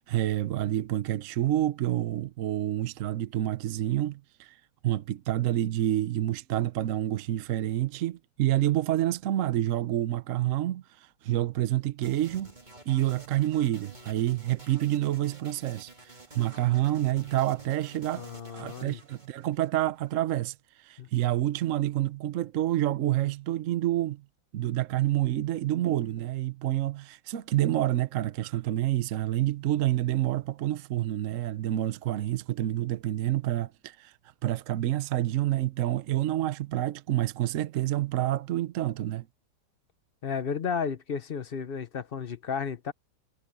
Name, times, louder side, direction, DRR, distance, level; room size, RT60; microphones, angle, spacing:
voice 1, 0.0-4.6 4.8-12.5 12.9-15.9 16.3-18.2 18.5-24.2 24.5-34.1 34.4-39.3, right 13 dB, 60° right, 0.9 m, -28 dB
sound 1, 12.0-20.1, right 2 dB, 25° right, 2.4 m, -50 dB
voice 2, 18.1-19.0 21.0-21.1 40.2-42.9, left 6 dB, 40° left, 0.8 m, -33 dB
omnidirectional pair, 2.0 m